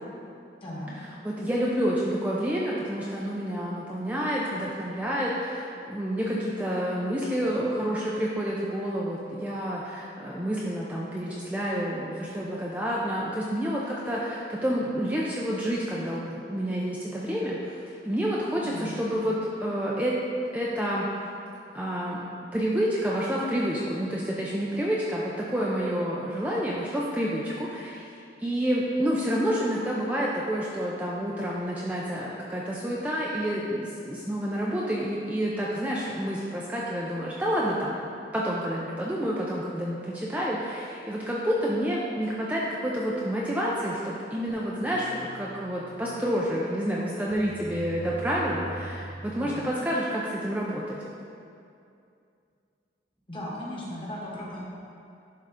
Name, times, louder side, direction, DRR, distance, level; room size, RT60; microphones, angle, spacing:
voice 1, 0.5-0.9 18.5-19.0 49.4-49.6 53.3-54.6, left 1 dB, 30° left, -6 dB, 1.5 m, -37 dB
voice 2, 1.2-20.1 20.5-21.1 21.7-22.2 22.5-28.1 28.4-38.0 38.3-51.0, equal, 10° right, -5 dB, 0.5 m, -29 dB
sound 1, 44.5-50.1, right 2 dB, 85° right, 0.8 m, -43 dB
11.0 x 3.8 x 3.6 m, 2.5 s
head